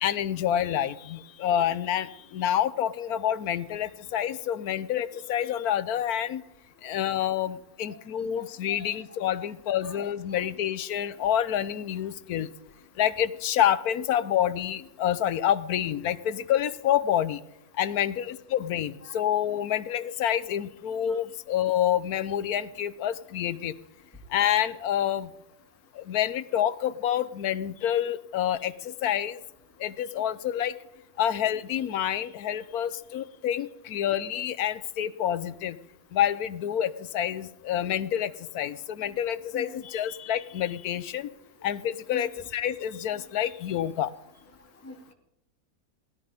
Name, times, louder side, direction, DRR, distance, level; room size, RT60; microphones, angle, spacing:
voice 1, 0.0-6.4 6.8-12.5 13.0-17.4 17.8-23.7 24.3-25.3 25.9-29.4 29.8-30.7 31.2-35.8 36.1-41.3 41.6-44.1, left 10 dB, 75° left, 15 dB, 1.2 m, -28 dB
voice 2, 8.4-8.8 9.8-10.0 39.5-39.8 42.1-42.3 44.8-45.1, left 1 dB, 10° left, 2 dB, 2.3 m, -42 dB
18.0 x 13.0 x 5.1 m, 0.87 s
omnidirectional pair, 1.6 m